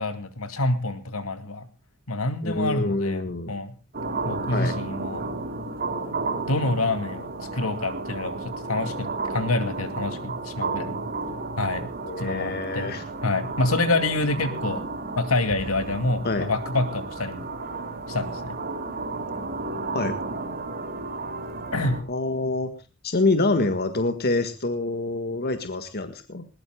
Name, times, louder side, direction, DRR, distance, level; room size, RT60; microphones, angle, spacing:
voice 1, 0.0-1.7 2.1-3.7 4.2-5.3 6.5-11.1 11.6-11.9 12.2-12.9 13.2-14.8 15.2-17.5 18.1-18.6 21.7-22.0, left 2 dB, 75° left, 10 dB, 2.4 m, -27 dB
voice 2, 2.4-3.5 4.5-4.7 12.0-13.0 16.2-16.5 19.9-20.2 22.1-22.7 23.0-26.5, left 2 dB, 50° left, 9 dB, 1.6 m, -26 dB
sound 1, 3.9-22.0, right 3 dB, 45° right, 4.0 m, -32 dB
20.5 x 19.5 x 2.3 m, 0.31 s
head